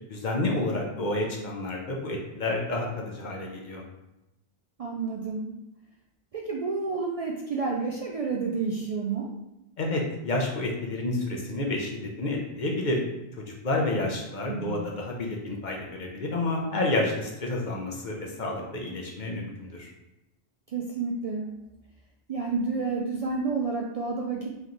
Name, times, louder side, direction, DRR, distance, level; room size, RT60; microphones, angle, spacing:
voice 1, 0.1-3.8 9.8-13.0 13.4-19.9, left 2 dB, 50° left, -1 dB, 0.8 m, -30 dB
voice 2, 4.8-5.6 6.3-9.3 14.5-14.8 20.7-21.6 22.3-24.5, right 4 dB, 55° right, -1 dB, 0.4 m, -30 dB
3.4 x 3.0 x 3.8 m, 0.94 s
omnidirectional pair, 1.0 m